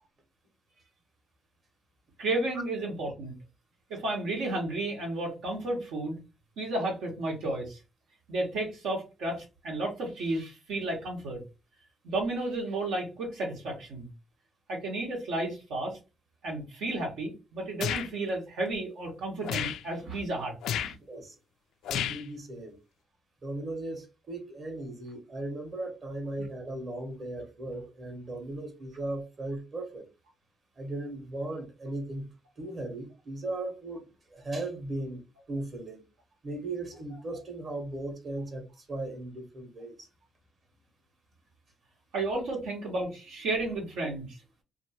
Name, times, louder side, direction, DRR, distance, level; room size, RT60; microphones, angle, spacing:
voice 1, 2.2-3.3 3.9-6.2 6.6-7.8 8.3-11.4 12.0-14.1 14.7-16.0 16.4-20.9 42.1-44.4, right 2 dB, 85° right, 1.4 m, -32 dB
sound 1, 17.8-18.1 19.4-19.8 20.6-20.9 21.8-22.2, left 9 dB, 80° left, 0.3 m, -31 dB
voice 2, 21.9-22.7 23.4-30.1 30.8-32.3 32.6-36.0 36.4-40.1, right 2 dB, 45° right, 1.2 m, -37 dB
2.8 x 2.6 x 2.9 m
cardioid pair, 90°, 0 cm